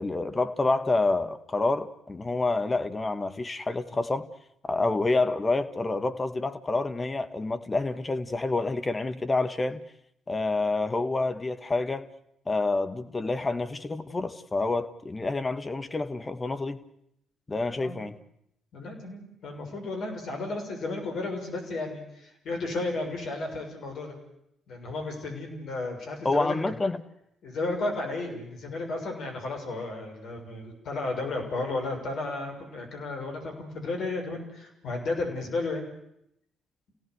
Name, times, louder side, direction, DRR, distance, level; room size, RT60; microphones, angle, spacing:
voice 1, 0.0-4.3 4.6-9.8 10.3-12.1 12.5-16.8 17.5-18.2 26.2-27.0, left 3 dB, 25° left, 9 dB, 1.8 m, -28 dB
voice 2, 18.7-24.2 24.7-26.5 27.4-35.8, left 2 dB, 60° left, 2 dB, 6.7 m, -33 dB
29.0 x 17.5 x 8.3 m, 0.78 s
figure-of-eight pair, 45°, 0 cm